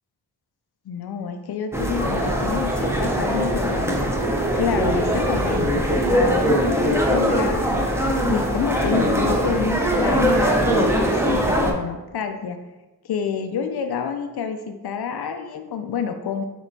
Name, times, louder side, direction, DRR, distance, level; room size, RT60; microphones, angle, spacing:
voice 1, 0.9-4.1 4.6-7.9 8.3-12.6 13.0-16.4, left 7 dB, 70° left, 6 dB, 0.5 m, -28 dB
sound 1, 1.7-11.7, right 1 dB, 5° right, 0.7 m, -21 dB
6.1 x 2.9 x 2.7 m, 1.1 s
cardioid pair, 50°, 40 cm